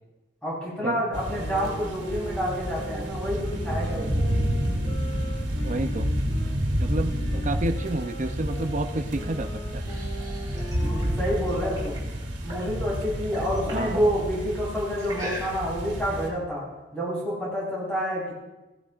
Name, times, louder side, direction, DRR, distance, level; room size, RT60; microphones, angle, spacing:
voice 1, 0.4-4.3 10.8-12.0 12.4-16.6 16.9-18.3, equal, 5° left, -8 dB, 4.8 m, -28 dB
sound 1, 1.1-16.3, equal, 65° right, 2.7 m, -30 dB
sound 2, 1.2-6.6 7.1-11.9, left 1 dB, 30° left, 1.6 m, -41 dB
voice 2, 5.6-6.1 6.8-9.8 13.7-13.9, right 2 dB, 40° right, 7 dB, 0.6 m, -30 dB
sound 3, 9.6-12.7 13.1-14.1 15.0-15.9, right 1 dB, 20° right, 4.5 m, -38 dB
17.0 x 12.0 x 2.5 m, 1.1 s
head